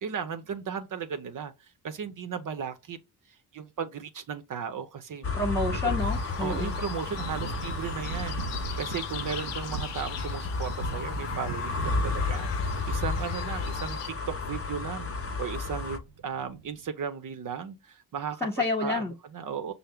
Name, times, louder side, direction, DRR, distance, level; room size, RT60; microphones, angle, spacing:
voice 1, 0.0-3.0 3.3-5.3 5.7-6.0 6.4-14.0 14.3-18.5 18.8-19.1 19.3-19.7, right 7 dB, 50° right, 0.6 m, -36 dB
sound 1, 5.2-16.0, left 4 dB, 35° left, 0.8 m, -32 dB
voice 2, 5.3-6.8 18.4-19.1, left 2 dB, 5° left, 0.8 m, -29 dB
sound 2, 6.0-14.1, left 9 dB, 85° left, 0.7 m, -42 dB
sound 3, 6.2-16.9, right 6 dB, 90° right, 0.6 m, -42 dB
5.5 x 2.1 x 3.4 m
cardioid pair, 70°, 41 cm